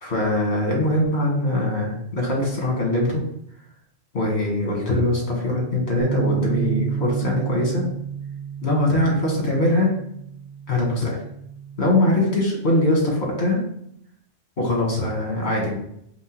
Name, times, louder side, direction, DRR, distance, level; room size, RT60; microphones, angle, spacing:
voice 1, 0.0-3.2 4.1-7.8 8.6-9.9 10.7-11.2 11.8-13.6 14.6-15.8, left 1 dB, 80° left, -2 dB, 1.7 m, -22 dB
sound 1, 6.0-12.2, right 8 dB, 80° right, 0.9 m, -30 dB
4.9 x 2.2 x 4.4 m, 0.71 s
omnidirectional pair, 1.1 m